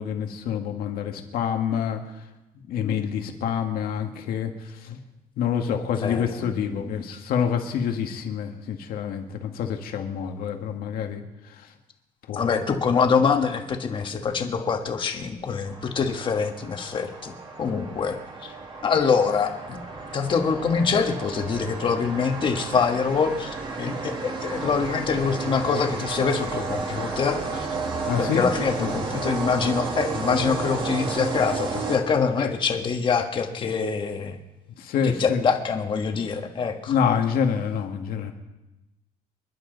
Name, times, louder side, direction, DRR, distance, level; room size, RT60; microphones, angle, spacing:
voice 1, 0.0-2.0 2.7-5.0 5.4-11.2 11.5-11.7 12.3-12.5 28.0-28.4 28.8-29.0 32.4-32.5 34.8-35.5 36.9-38.3, left 7 dB, 70° left, 4 dB, 1.9 m, -27 dB
voice 2, 6.0-6.9 12.3-17.3 17.6-18.5 18.8-19.8 20.1-27.7 28.2-34.4 35.0-36.9, left 5 dB, 30° left, 5 dB, 1.4 m, -25 dB
sound 1, 15.7-32.5, right 4 dB, 30° right, 1.9 m, -32 dB
27.5 x 11.0 x 4.0 m, 1.0 s
cardioid pair, 180°, 16 cm